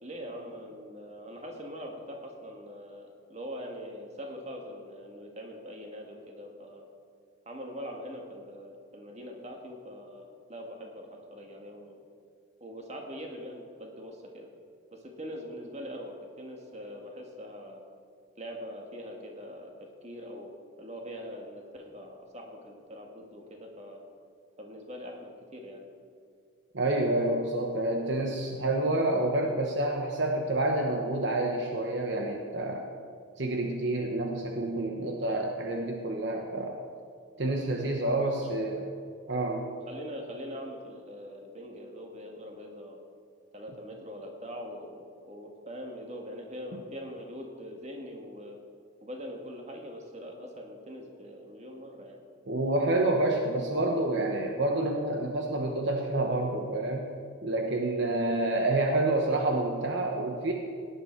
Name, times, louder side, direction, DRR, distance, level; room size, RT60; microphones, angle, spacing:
voice 1, 0.0-6.9 7.4-12.0 12.6-14.5 14.9-17.8 18.4-19.7 20.0-24.0 24.6-25.8 38.2-38.5 39.9-43.0 43.5-48.6 49.0-52.2, equal, 30° right, 1 dB, 1.8 m, -42 dB
voice 2, 26.7-32.8 33.4-36.8 37.4-38.8 39.3-39.6 52.5-57.1 57.4-60.5, right 2 dB, 55° right, 1 dB, 1.0 m, -28 dB
17.0 x 10.0 x 4.6 m, 2.3 s
head